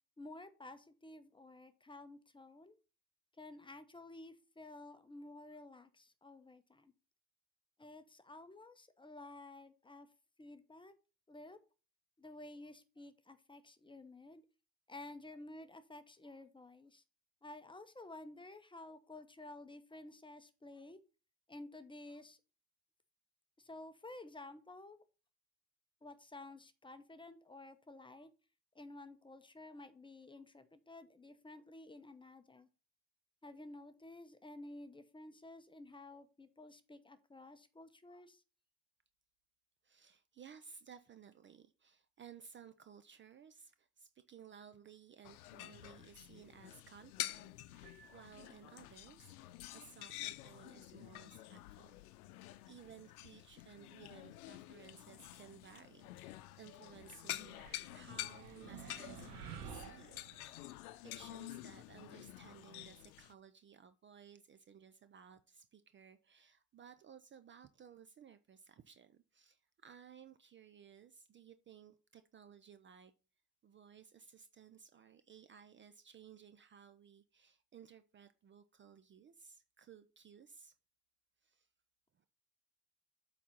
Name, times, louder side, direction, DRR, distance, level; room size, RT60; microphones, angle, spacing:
voice 1, 0.2-2.8 3.4-6.9 7.8-10.1 10.4-10.9 11.3-11.6 12.2-14.4 14.9-17.0 17.4-21.0 21.5-22.4 23.6-25.0 26.0-28.3 28.7-32.7 33.4-38.4, left 2 dB, 10° left, 0.9 m, -53 dB
voice 2, 39.8-51.9 52.7-60.4 60.6-60.8 61.0-73.1 73.6-80.7 81.4-81.7 82.1-82.3, right 7 dB, 25° right, 0.6 m, -58 dB
sound 1, 45.2-63.3, left 16 dB, 80° left, 0.8 m, -49 dB
Piano, 47.8-49.1, right 7 dB, 65° right, 1.3 m, -65 dB
sound 2, 57.4-60.7, right 7 dB, 85° right, 1.3 m, -51 dB
8.3 x 4.1 x 5.8 m
hypercardioid pair, 90°, 44 cm